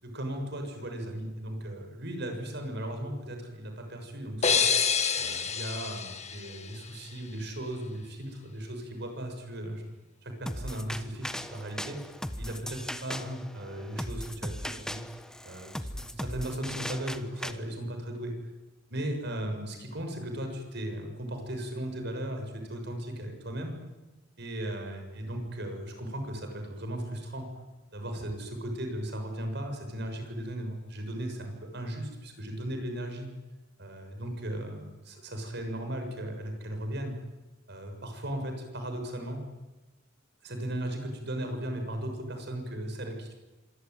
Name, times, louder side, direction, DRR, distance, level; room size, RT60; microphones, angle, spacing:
voice 1, 0.0-4.7 5.1-9.9 10.2-12.0 12.4-15.0 15.4-18.3 18.9-23.7 24.4-27.5 27.9-33.3 33.8-37.1 37.7-39.5 40.4-43.3, right 1 dB, 60° right, 5 dB, 6.9 m, -36 dB
sound 1, 4.4-7.2, left 6 dB, 35° left, 1.9 m, -28 dB
sound 2, 10.5-17.5, equal, 5° left, 1.2 m, -38 dB
26.0 x 22.0 x 9.5 m, 1.1 s
head